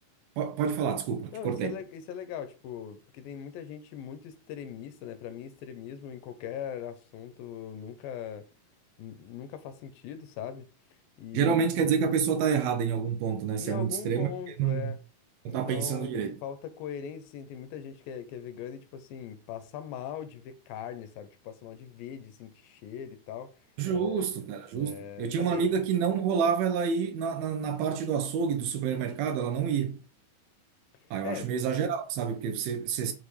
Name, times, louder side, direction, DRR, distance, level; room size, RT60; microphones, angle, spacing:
voice 1, 0.4-1.8 11.3-14.3 14.6-14.9 15.5-16.4 23.8-30.0 31.1-33.1, right 7 dB, 80° right, 2.6 m, -28 dB
voice 2, 1.3-8.5 9.0-10.7 11.2-11.7 13.6-15.0 15.5-23.5 23.9-24.2 24.8-25.6 31.2-31.5, left 8 dB, 80° left, 2.3 m, -40 dB
6.0 x 5.2 x 3.2 m
omnidirectional pair, 4.3 m